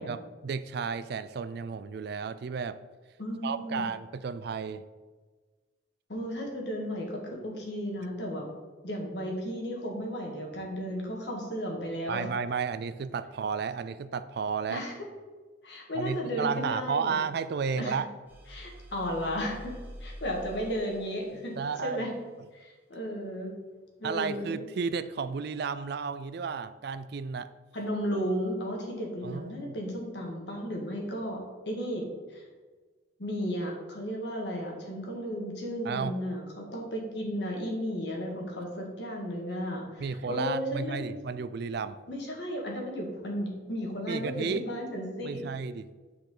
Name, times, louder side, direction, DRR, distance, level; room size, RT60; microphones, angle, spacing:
voice 1, 0.0-2.8 3.4-4.8 12.1-14.8 15.9-18.1 21.5-22.1 24.0-27.5 29.2-29.7 35.8-36.1 40.0-42.0 44.1-44.6 45.2-45.9, right 5 dB, 55° right, 13 dB, 0.3 m, -33 dB
voice 2, 3.2-3.8 6.1-8.5 8.8-12.3 14.7-14.9 15.6-17.2 17.8-18.0 18.5-19.7 20.0-22.1 22.5-23.5 24.0-24.6 27.7-32.4 33.2-41.1 42.1-45.5, equal, 60° left, 0 dB, 1.7 m, -34 dB
sound 1, 18.3-21.8, equal, 10° right, 1.1 m, -46 dB
9.2 x 4.9 x 3.8 m, 1.3 s
head